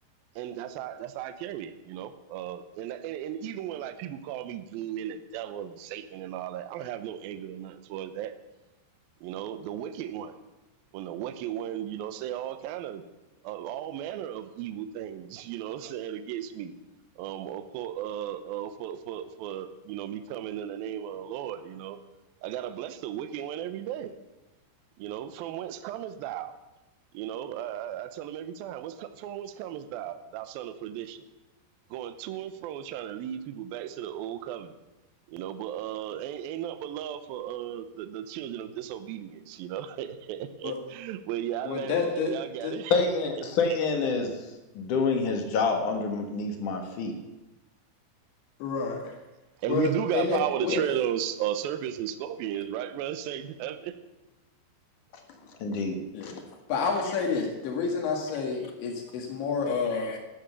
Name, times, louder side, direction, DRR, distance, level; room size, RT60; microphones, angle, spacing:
voice 1, 0.4-8.3 9.2-10.4 10.9-13.0 13.4-16.7 17.2-22.0 22.4-24.1 25.0-26.5 27.1-31.3 31.9-34.8 35.3-42.9 43.4-43.5 49.6-53.9, right 10 dB, 75° right, 10 dB, 2.2 m, -35 dB
voice 2, 41.7-42.3 42.6-42.7 48.6-49.1 49.7-50.8 56.1-56.3 56.7-60.2, left 5 dB, 75° left, 1 dB, 4.1 m, -29 dB
voice 3, 42.9-44.3 44.7-47.1 50.7-50.8 55.6-56.3 59.9-60.2, left 4 dB, 60° left, 4 dB, 2.4 m, -27 dB
13.5 x 11.5 x 6.9 m, 1.1 s
omnidirectional pair, 5.3 m